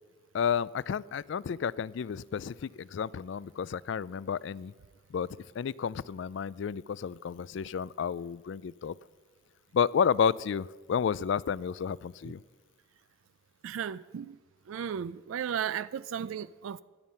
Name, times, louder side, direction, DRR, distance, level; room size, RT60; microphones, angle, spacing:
voice 1, 0.3-4.7 5.1-5.3 5.6-8.9 9.7-12.4, left 7 dB, 65° left, 0.3 m, -31 dB
voice 2, 13.6-14.4 14.7-16.8, right 8 dB, 80° right, 0.3 m, -35 dB
16.5 x 10.5 x 5.6 m
head